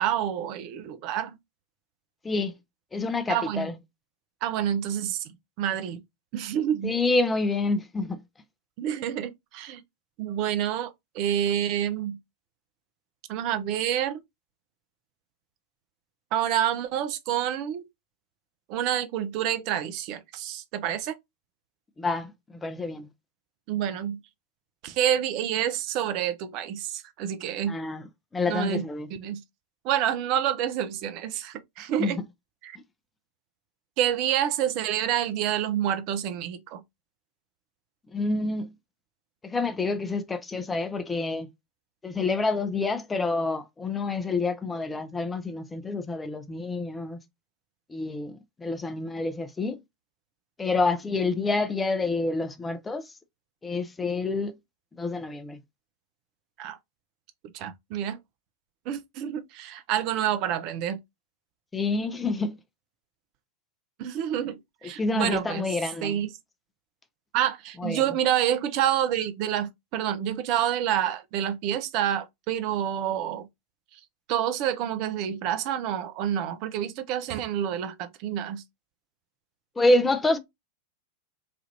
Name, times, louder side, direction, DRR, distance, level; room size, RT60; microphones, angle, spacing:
voice 1, 0.0-1.4 3.3-3.7 4.4-6.0 6.3-6.9 8.8-9.8 10.2-12.2 13.3-14.2 16.3-17.8 18.7-21.2 23.7-24.2 24.8-27.7 28.5-28.8 29.2-29.4 29.8-32.2 32.6-32.8 34.0-36.8 56.6-56.8 57.5-58.2 58.9-61.0 64.0-65.7 66.0-66.3 67.3-73.5 73.9-74.0 74.3-78.6, right 10 dB, 40° right, 0.5 m, -28 dB
voice 2, 2.9-3.8 6.8-8.2 22.0-23.1 27.7-28.0 28.3-29.1 32.0-32.2 38.1-38.7 39.4-41.5 42.0-47.2 47.9-49.8 50.6-53.1 53.6-54.5 55.0-55.6 61.7-62.6 64.8-66.2 67.8-68.2 79.8-80.4, left 3 dB, 10° left, 0.5 m, -28 dB
3.3 x 2.4 x 2.7 m
figure-of-eight pair, 90°, 0 cm